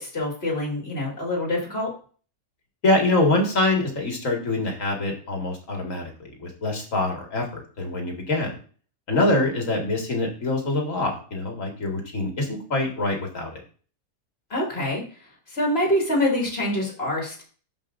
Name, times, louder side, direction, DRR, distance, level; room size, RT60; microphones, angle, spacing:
voice 1, 0.0-1.9 14.5-15.0 15.5-17.4, left 1 dB, 45° left, -1 dB, 3.2 m, -25 dB
voice 2, 2.8-8.5 9.1-13.6, left 2 dB, 65° left, 1 dB, 2.5 m, -25 dB
13.5 x 5.3 x 2.6 m, 0.41 s
omnidirectional pair, 1.5 m